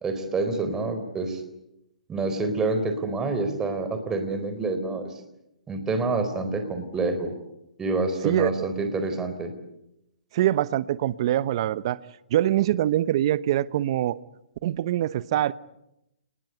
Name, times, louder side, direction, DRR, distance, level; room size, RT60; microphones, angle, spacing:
voice 1, 0.0-1.4 2.1-5.1 5.7-7.3 7.8-9.5, right 3 dB, 15° right, 4.1 m, -27 dB
voice 2, 10.3-12.0 12.3-14.2 14.6-15.5, right 13 dB, 50° right, 1.0 m, -24 dB
29.5 x 20.5 x 8.1 m
hypercardioid pair, 140°, 4 cm